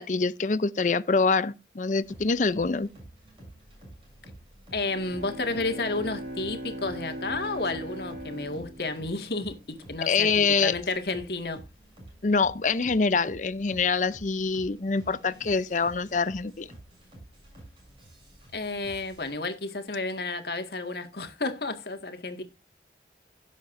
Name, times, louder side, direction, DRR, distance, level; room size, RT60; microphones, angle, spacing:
voice 1, 0.0-2.9 10.1-10.8 12.2-16.7, left 4 dB, 45° left, 0.5 m, -25 dB
sound 1, 2.0-19.3, right 1 dB, 30° right, 7.5 m, -50 dB
voice 2, 4.7-11.6 18.5-22.4, left 3 dB, 60° left, 1.8 m, -31 dB
Bowed string instrument, 4.7-9.9, right 1 dB, 50° right, 4.6 m, -40 dB
17.0 x 7.4 x 2.6 m
head